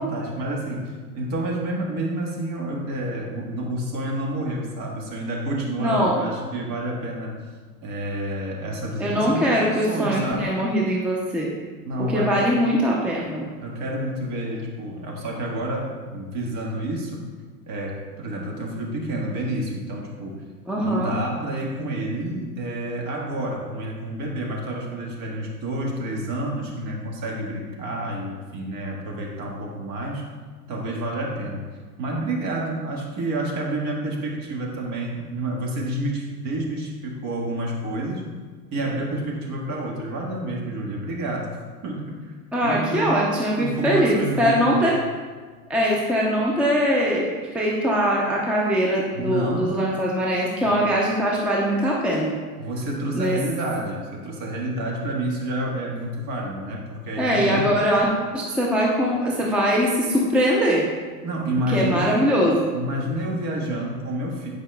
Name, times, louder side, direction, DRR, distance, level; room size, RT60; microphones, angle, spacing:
voice 1, 0.0-7.3 7.8-10.6 11.8-12.5 13.6-17.2 17.7-20.4 20.8-30.3 30.7-31.6 32.0-38.2 38.7-42.4 42.6-43.3 43.5-44.9 49.1-49.7 50.6-50.7 52.6-57.7 61.2-62.1 62.7-64.5, right 1 dB, 45° right, 0 dB, 1.5 m, -29 dB
voice 2, 5.8-6.2 9.0-11.5 12.0-13.5 20.7-21.1 42.5-44.9 45.7-47.3 47.5-52.3 53.1-53.4 57.2-60.8 61.7-62.8, equal, 5° right, -3 dB, 0.5 m, -22 dB
9.0 x 5.0 x 2.3 m, 1.5 s
hypercardioid pair, 100°, 46 cm